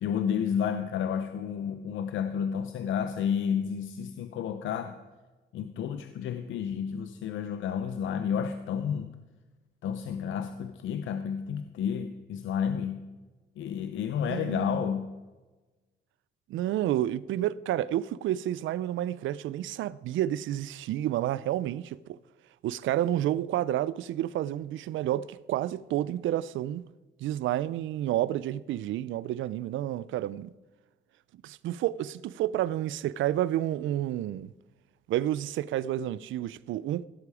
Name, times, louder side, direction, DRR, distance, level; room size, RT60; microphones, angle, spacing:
voice 1, 0.0-5.0 5.5-9.1 9.8-13.1 13.6-15.1, left 8 dB, 75° left, 0.7 m, -31 dB
voice 2, 14.2-14.8 16.5-22.0 22.6-26.8 27.2-30.5 31.4-34.5 35.1-37.1, right 13 dB, 75° right, 0.5 m, -30 dB
16.5 x 8.3 x 4.9 m
cardioid pair, 90°, 20 cm